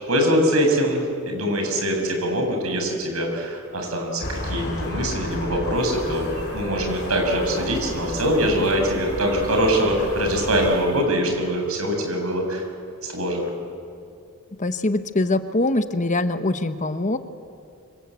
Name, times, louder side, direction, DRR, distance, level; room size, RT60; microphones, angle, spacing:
voice 1, 0.1-12.7 13.0-13.5, equal, 85° right, 2 dB, 6.4 m, -23 dB
sound 1, 4.2-10.7, left 1 dB, 50° left, 6.8 m, -32 dB
sound 2, 5.7-11.1, right 1 dB, 65° right, 4.7 m, -38 dB
voice 2, 14.6-17.2, left 2 dB, 35° left, 10 dB, 1.0 m, -23 dB
27.0 x 26.0 x 8.2 m, 2.4 s
head